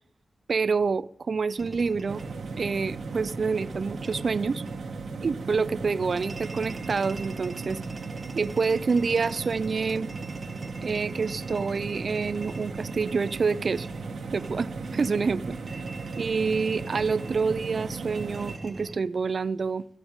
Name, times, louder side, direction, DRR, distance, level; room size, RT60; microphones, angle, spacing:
voice 1, 0.5-2.2 2.6-4.6 5.2-7.8 8.3-10.1 10.8-13.9 14.3-14.7 14.9-15.4 16.2-19.9, right 5 dB, 60° right, 18 dB, 0.5 m, -27 dB
sound 1, 1.6-19.0, right 3 dB, 40° right, 1.0 m, -41 dB
sound 2, 2.1-18.6, right 4 dB, 80° right, 1.3 m, -37 dB
14.0 x 10.0 x 5.3 m, 0.62 s
cardioid pair, 55°, 0 cm